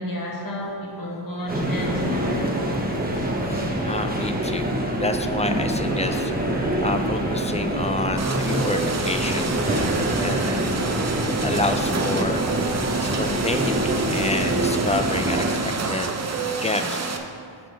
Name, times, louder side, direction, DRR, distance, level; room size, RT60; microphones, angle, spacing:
voice 1, 0.0-3.3, left 1 dB, 45° left, -3 dB, 1.5 m, -31 dB
sound 1, 1.5-15.5, right 1 dB, 20° right, 0.9 m, -25 dB
voice 2, 3.5-6.3 6.8-12.4 13.0-16.2 16.6-17.1, left 2 dB, 15° left, 7 dB, 0.3 m, -29 dB
sound 2, 8.2-17.2, right 4 dB, 35° right, 0.6 m, -28 dB
6.9 x 5.9 x 5.0 m, 2.4 s
wide cardioid pair, 130°, 45 cm